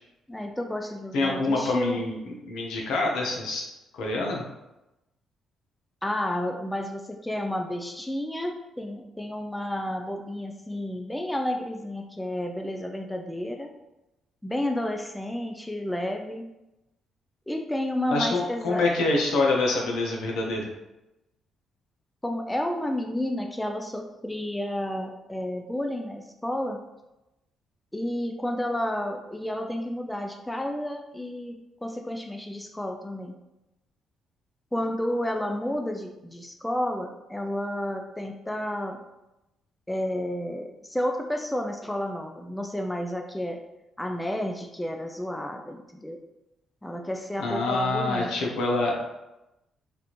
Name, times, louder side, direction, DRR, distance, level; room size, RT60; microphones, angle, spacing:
voice 1, 0.3-2.0 6.0-13.7 14.4-16.4 17.5-18.9 22.2-26.8 27.9-31.5 31.8-33.4 34.7-39.0 39.9-43.6 44.0-46.2 46.8-48.5, left 1 dB, 5° left, 3 dB, 0.4 m, -31 dB
voice 2, 1.1-3.7 3.9-4.4 18.1-20.6 47.4-49.2, left 2 dB, 85° left, -1 dB, 0.7 m, -26 dB
3.3 x 2.5 x 2.9 m, 0.95 s
cardioid pair, 90°, 0 cm